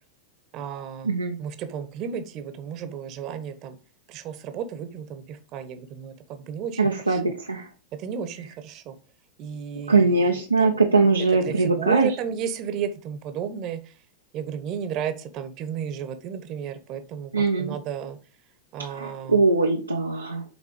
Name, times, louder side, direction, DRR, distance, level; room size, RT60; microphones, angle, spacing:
voice 1, 0.5-1.1 1.4-3.8 4.1-6.8 7.1-7.4 7.9-9.0 9.4-10.8 11.3-13.9 14.3-17.3 17.6-18.2 18.7-19.4, right 7 dB, 40° right, 10 dB, 1.1 m, -33 dB
voice 2, 1.0-1.4 6.8-7.7 9.9-12.1 17.3-17.8 18.9-20.4, right 3 dB, 80° right, 2 dB, 0.9 m, -21 dB
7.3 x 4.1 x 5.1 m, 0.35 s
figure-of-eight pair, 90°, 0 cm